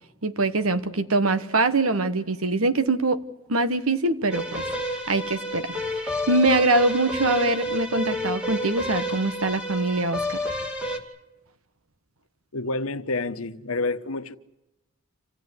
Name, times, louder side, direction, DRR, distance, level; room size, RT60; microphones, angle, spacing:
voice 1, 0.2-3.2 3.5-4.6 5.1-5.7 6.0-10.4, right 2 dB, 80° right, 1.4 m, -23 dB
sound 1, 4.3-11.0, equal, 5° right, 2.5 m, -30 dB
voice 2, 12.5-14.4, left 3 dB, 90° left, 1.2 m, -28 dB
27.5 x 16.0 x 9.8 m
head